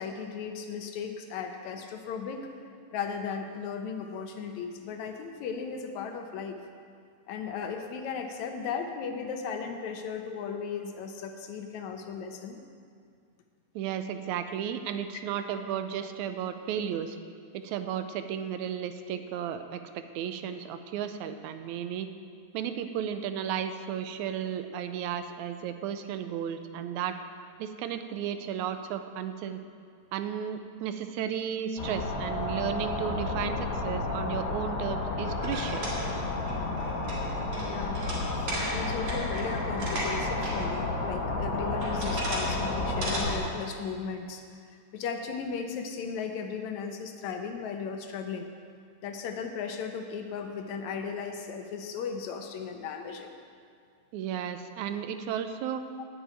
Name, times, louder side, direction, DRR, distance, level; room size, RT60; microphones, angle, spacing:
voice 1, 0.0-2.5 2.9-6.6 7.3-12.6 37.6-38.0 38.4-44.4 44.7-48.5 49.0-53.4 56.0-56.1, left 6 dB, 75° left, 5 dB, 2.2 m, -36 dB
voice 2, 13.8-17.2 17.5-22.1 22.5-27.2 27.6-29.6 30.1-35.9 54.1-55.9, right 9 dB, 80° right, 9 dB, 2.0 m, -34 dB
sound 1, 31.8-43.4, left 2 dB, 55° left, 2.3 m, -31 dB
sound 2, 35.2-40.5 40.9-41.0 41.6-42.5 42.8-43.2, right 1 dB, 55° right, 3.8 m, -36 dB
9.2 x 7.8 x 9.0 m, 2.2 s
omnidirectional pair, 3.3 m